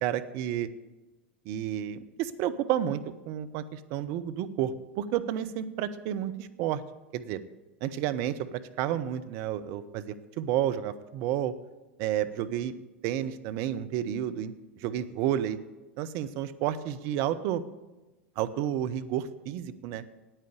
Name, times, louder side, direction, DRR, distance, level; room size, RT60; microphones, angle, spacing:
voice 1, 0.0-0.7 1.5-3.0 3.3-6.8 7.1-7.4 7.8-11.5 12.0-12.7 13.0-14.5 14.8-15.6 16.0-17.6 18.4-20.0, right 11 dB, 45° right, 11 dB, 0.7 m, -31 dB
9.1 x 9.0 x 8.4 m, 1.1 s
figure-of-eight pair, 90°, 6 cm